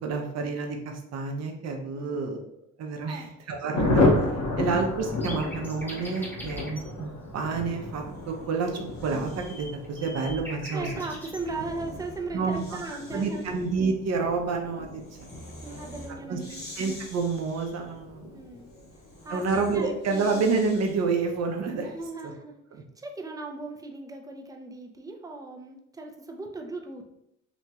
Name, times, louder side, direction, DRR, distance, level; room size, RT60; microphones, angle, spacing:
voice 1, 0.0-2.4 2.8-4.0 4.6-10.9 12.3-12.6 13.1-15.0 16.3-16.4 16.8-18.4 19.3-21.9 22.2-22.3 22.7-22.8, right 4 dB, 60° right, 3 dB, 0.7 m, -29 dB
Thunder, 3.7-19.9 20.1-20.2 20.5-20.7 20.9-21.3, left 2 dB, 90° left, 0.8 m, -32 dB
sound 1, 5.2-6.9 9.0-11.4, left 1 dB, 5° left, 0.8 m, -42 dB
Breathing, 7.8-9.7 11.0-21.2, left 1 dB, 35° left, 1.2 m, -48 dB
voice 2, 10.7-13.5 15.6-16.6 18.3-18.7 19.2-19.5 19.7-20.4 21.7-22.6 23.0-27.1, right 3 dB, 10° right, 3 dB, 0.4 m, -37 dB
2.9 x 2.7 x 2.3 m, 0.80 s
cardioid pair, 90°, 30 cm